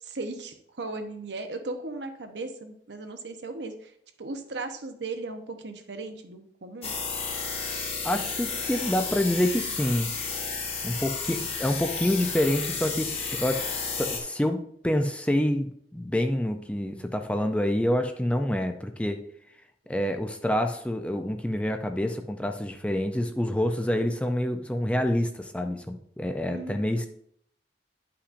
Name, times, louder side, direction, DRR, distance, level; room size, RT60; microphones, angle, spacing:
voice 1, 0.0-3.9 4.2-6.9 26.5-26.9, right 3 dB, 80° right, 6 dB, 0.9 m, -37 dB
sound 1, 6.8-14.2, left 5 dB, 35° left, 1.0 m, -32 dB
voice 2, 8.0-10.1 10.8-13.7 14.0-19.2 19.9-27.1, left 1 dB, 5° left, 6 dB, 0.4 m, -27 dB
9.8 x 5.7 x 2.5 m, 0.68 s
head